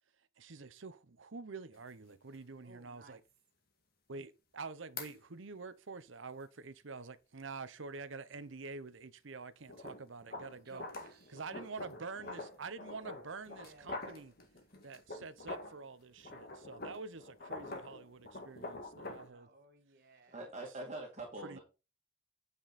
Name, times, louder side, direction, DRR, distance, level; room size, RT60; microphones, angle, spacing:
voice 1, 0.4-3.2 4.1-10.8 11.3-14.3 14.8-19.5 21.4-21.6, right 4 dB, 70° right, 0.8 m, -47 dB
sound 1, 1.7-1.8 2.3-2.4 5.0-5.1 9.7-15.8 16.2-19.3, left 2 dB, 50° left, 1.9 m, -46 dB
voice 2, 2.6-3.2 10.3-11.4 13.6-14.2 19.3-20.4, right 3 dB, 50° right, 1.7 m, -59 dB
voice 3, 20.3-21.6, right 2 dB, 35° right, 2.1 m, -43 dB
9.1 x 5.4 x 4.1 m
head